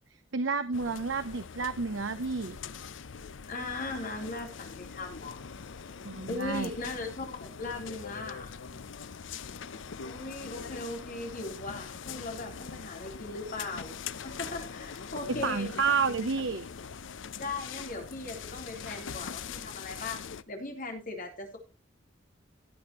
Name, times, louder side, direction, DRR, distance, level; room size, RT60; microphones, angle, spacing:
voice 1, 0.3-2.6 6.0-6.7 15.4-16.7, right 5 dB, 75° right, 11 dB, 0.7 m, -30 dB
sound 1, 0.7-20.4, left 6 dB, 80° left, 0.6 m, -42 dB
voice 2, 3.5-5.5 6.3-8.6 10.0-14.0 14.2-15.7 17.4-21.6, left 2 dB, 45° left, 2 dB, 3.5 m, -38 dB
17.5 x 7.8 x 3.0 m, 0.26 s
head